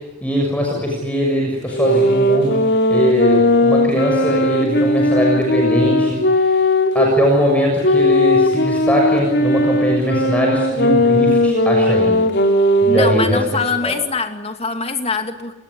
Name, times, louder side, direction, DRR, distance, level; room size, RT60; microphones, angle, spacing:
voice 1, 0.2-2.6 2.9-6.5 6.9-12.2 12.8-13.4 13.8-13.9, equal, 5° left, 0 dB, 6.7 m, -20 dB
sound 1, 1.7-7.2 7.8-13.2, left 1 dB, 60° left, 4.0 m, -17 dB
voice 2, 12.8-15.5, left 4 dB, 30° left, 6 dB, 2.6 m, -23 dB
29.5 x 20.0 x 9.8 m, 1.0 s
head